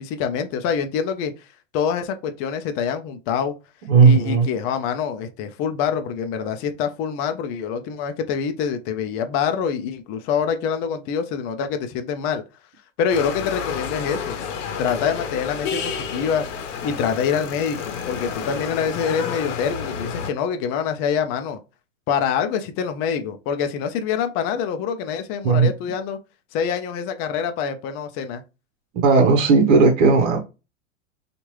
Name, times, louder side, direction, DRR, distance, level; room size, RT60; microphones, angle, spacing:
voice 1, 0.0-1.5 1.7-3.5 4.0-12.4 13.0-14.4 14.8-16.5 16.8-21.6 22.1-26.2 26.5-28.4, left 7 dB, 35° left, 0.5 m, -25 dB
voice 2, 3.9-4.5 25.4-25.7 29.0-30.4, right 4 dB, 60° right, 1.0 m, -15 dB
sound 1, 13.1-20.3, left 6 dB, 65° left, 0.8 m, -30 dB
2.9 x 2.5 x 3.0 m
hypercardioid pair, 105°, 39 cm